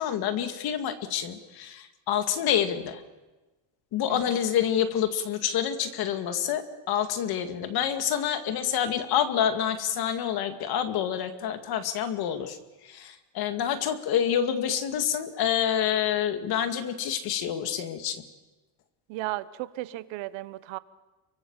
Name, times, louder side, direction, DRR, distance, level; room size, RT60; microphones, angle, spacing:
voice 1, 0.0-3.0 3.9-12.6 12.8-18.2, left 9 dB, 50° left, 2.3 m, -27 dB
voice 2, 19.1-20.8, right 17 dB, 65° right, 1.2 m, -34 dB
29.0 x 24.0 x 7.4 m
cardioid pair, 165°, 48 cm